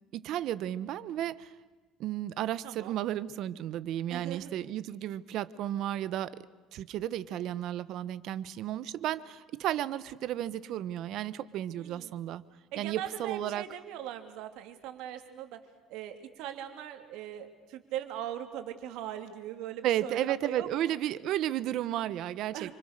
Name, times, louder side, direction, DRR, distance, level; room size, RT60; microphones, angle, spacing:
voice 1, 0.0-1.5 2.0-6.4 6.7-12.4 12.8-13.6 19.8-22.7, right 12 dB, 60° right, 16 dB, 1.2 m, -33 dB
voice 2, 2.6-2.9 4.1-4.5 11.8-12.1 12.7-15.6 15.9-20.9 22.5-22.7, right 11 dB, 80° right, 7 dB, 3.0 m, -40 dB
28.5 x 26.0 x 6.8 m, 1.3 s
cardioid pair, 135°, 0 cm